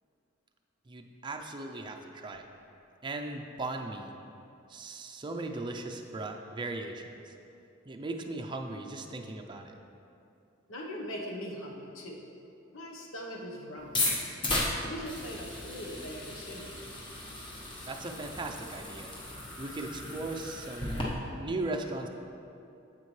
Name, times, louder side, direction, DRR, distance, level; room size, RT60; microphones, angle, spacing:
voice 1, 0.9-2.5 3.0-4.1 4.7-7.3 7.8-9.8 17.8-19.1 19.6-21.1 21.4-22.1, right 2 dB, 25° right, 3 dB, 0.5 m, -38 dB
voice 2, 10.7-12.2 12.7-14.0 14.9-16.7, equal, 85° left, -1 dB, 1.1 m, -41 dB
sound 1, 13.8-21.0, left 1 dB, 25° left, 1.3 m, -35 dB
9.5 x 7.5 x 3.2 m, 2.7 s
head